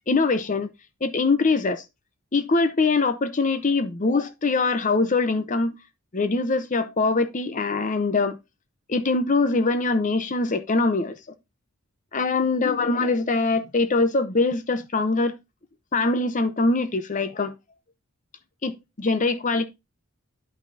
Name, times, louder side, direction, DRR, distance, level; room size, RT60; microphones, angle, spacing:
voice 1, 0.1-0.7 1.0-1.8 2.3-5.7 6.1-8.4 8.9-11.2 12.1-15.3 15.9-17.5 18.6-19.7, left 3 dB, 35° left, 0.7 m, -23 dB
10.5 x 5.9 x 2.6 m
head